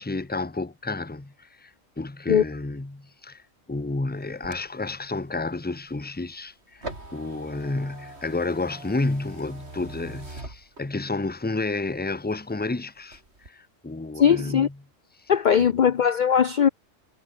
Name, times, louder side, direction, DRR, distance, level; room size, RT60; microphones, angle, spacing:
voice 1, 0.0-3.4 3.7-14.8 15.2-15.8, left 2 dB, 10° left, 0.9 m, -31 dB
sound 1, 4.1-11.2 11.7-12.7 13.0-13.5, right 2 dB, 55° right, 5.5 m, -43 dB
voice 2, 14.2-14.7 15.3-16.7, left 8 dB, 45° left, 0.6 m, -19 dB
omnidirectional pair, 1.4 m